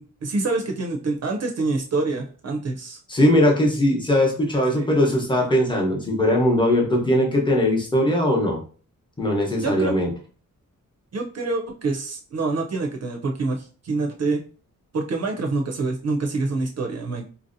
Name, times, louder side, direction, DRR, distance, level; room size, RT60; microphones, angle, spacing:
voice 1, 0.0-3.0 4.7-4.9 9.6-9.9 11.1-14.4 14.9-17.2, right 3 dB, 50° right, 2 dB, 0.5 m, -26 dB
voice 2, 3.1-8.6 9.2-10.1, left 1 dB, 15° left, 0 dB, 0.8 m, -20 dB
4.2 x 2.7 x 2.5 m, 0.41 s
wide cardioid pair, 165°, 32 cm